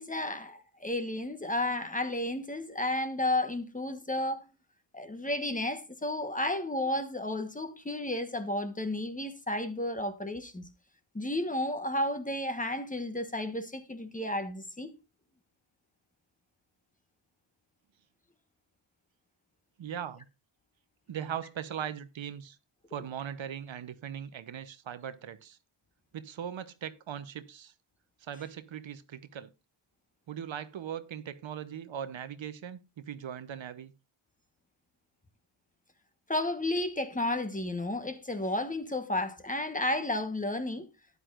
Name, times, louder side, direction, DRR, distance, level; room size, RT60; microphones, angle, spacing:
voice 1, 0.0-4.4 4.9-10.6 11.1-14.9 36.3-40.9, left 1 dB, 15° left, 1.2 m, -32 dB
voice 2, 19.8-20.2 21.1-22.6 22.9-25.6 26.1-27.7 28.2-29.5 30.3-33.9, right 9 dB, 70° right, 0.9 m, -39 dB
12.5 x 9.7 x 2.5 m
wide cardioid pair, 85°, 47 cm